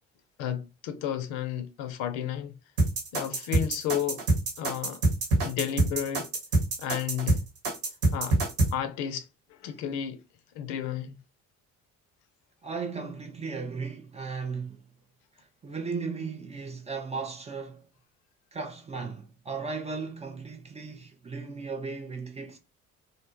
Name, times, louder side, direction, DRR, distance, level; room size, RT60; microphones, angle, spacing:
voice 1, 0.4-2.5 3.1-4.2 4.6-5.0 5.4-6.3 6.8-7.4 8.1-8.4 8.7-9.3 9.6-10.2 10.5-11.2, left 9 dB, 60° left, 0.5 m, -32 dB
sound 1, 2.8-8.7, right 2 dB, 60° right, 1.3 m, -25 dB
voice 2, 12.6-14.8 15.6-17.8 18.5-22.6, right 4 dB, 15° right, 0.4 m, -36 dB
2.6 x 2.1 x 2.8 m
figure-of-eight pair, 50°, 40 cm